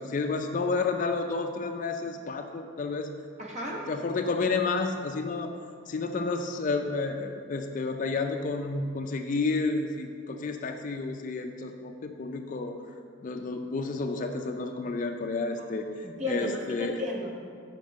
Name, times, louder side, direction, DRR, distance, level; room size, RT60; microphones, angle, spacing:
voice 1, 0.0-3.1 3.9-5.5 5.9-12.8 13.2-15.9 16.3-17.0, left 3 dB, 40° left, 5 dB, 0.3 m, -30 dB
voice 2, 3.4-3.8 16.0-17.3, left 1 dB, 35° right, -1 dB, 1.0 m, -33 dB
5.7 x 5.1 x 6.3 m, 2.3 s
head